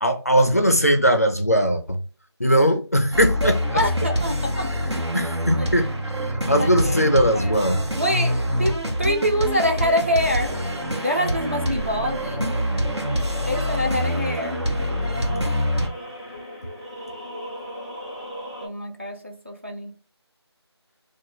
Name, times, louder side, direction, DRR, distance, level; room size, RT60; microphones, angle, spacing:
voice 1, 0.0-2.0 2.4-3.6 5.1-5.9 6.3-7.8, equal, 35° left, 0.4 m, -19 dB
sound 1, 3.1-15.9, equal, 75° right, 1.1 m, -25 dB
voice 2, 3.4-4.7 5.6-5.7 6.6-7.6 8.0-10.6 11.0-12.6 13.5-14.6 18.6-19.9, equal, 30° right, 0.4 m, -26 dB
sound 2, 9.4-18.7, equal, 10° right, 0.9 m, -36 dB
2.8 x 2.3 x 4.0 m
figure-of-eight pair, 175°, 14 cm